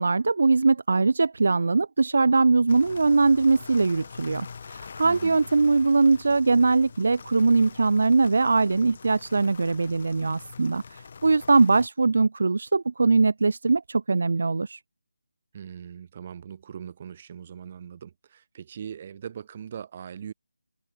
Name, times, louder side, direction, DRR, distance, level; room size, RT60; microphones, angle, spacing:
voice 1, 0.0-14.8, right 3 dB, 45° right, 0.6 m, -21 dB
sound 1, 2.7-11.9, left 5 dB, 25° left, 6.5 m, -44 dB
voice 2, 5.0-5.4 15.5-20.3, right 8 dB, 20° right, 4.4 m, -40 dB
figure-of-eight pair, 180°, 0 cm